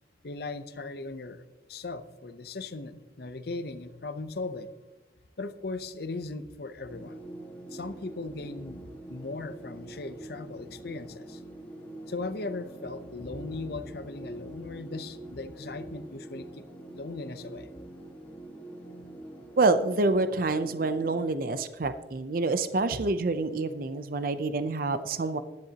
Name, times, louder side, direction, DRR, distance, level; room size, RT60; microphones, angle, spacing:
voice 1, 0.2-4.7 5.4-7.2 7.7-8.8 9.1-11.4 12.1-17.7, left 3 dB, 60° left, 11 dB, 0.7 m, -38 dB
sound 1, 6.9-21.3, right 1 dB, 10° left, 1.7 m, -45 dB
voice 2, 19.6-25.4, right 3 dB, 50° right, 11 dB, 0.5 m, -27 dB
15.5 x 10.5 x 2.9 m, 1.1 s
head